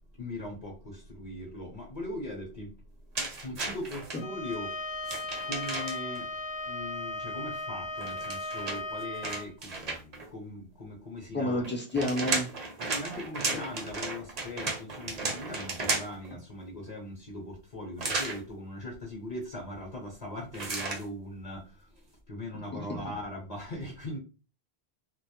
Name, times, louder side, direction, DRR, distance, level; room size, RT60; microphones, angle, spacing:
voice 1, 0.1-3.1 3.4-11.7 12.8-24.2, left 1 dB, 45° left, 0.7 m, -40 dB
sound 1, 3.1-4.2 5.0-6.2 8.0-10.3 11.6-16.3 18.0-18.4 20.5-21.0, right 3 dB, 45° right, 0.6 m, -34 dB
Bowed string instrument, 4.1-9.5, left 2 dB, 70° left, 0.8 m, -36 dB
voice 2, 11.3-12.5 13.5-13.6 22.7-22.8, left 1 dB, 20° left, 0.3 m, -30 dB
2.2 x 2.0 x 2.8 m
omnidirectional pair, 1.1 m